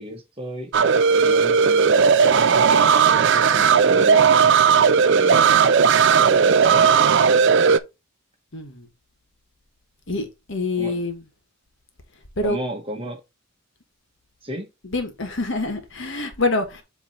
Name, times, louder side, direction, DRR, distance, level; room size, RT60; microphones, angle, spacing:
voice 1, 0.0-4.3 5.1-5.7 6.1-7.8 10.8-10.9 12.4-13.2 14.4-14.7, equal, 25° right, 1.4 m, -34 dB
sound 1, 0.7-7.8, right 6 dB, 55° right, 0.4 m, -16 dB
voice 2, 8.5-8.9 10.1-11.2 12.4-12.6 14.8-16.8, left 2 dB, 60° left, 1.4 m, -26 dB
7.9 x 3.1 x 4.3 m
head